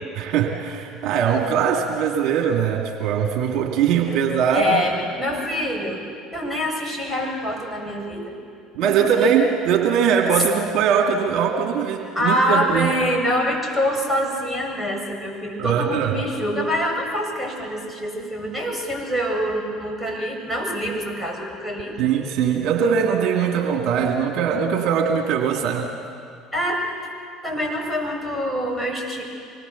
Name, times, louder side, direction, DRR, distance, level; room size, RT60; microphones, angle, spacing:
voice 1, 0.1-4.9 8.7-12.9 15.6-16.1 22.0-25.9, right 7 dB, 60° right, 1 dB, 2.3 m, -21 dB
voice 2, 4.5-6.0 6.3-8.3 8.8-9.1 12.2-22.0 26.5-26.8 27.4-29.2, equal, 5° left, -1 dB, 7.3 m, -25 dB
25.0 x 20.0 x 7.1 m, 2.4 s
hypercardioid pair, 65°, 0 cm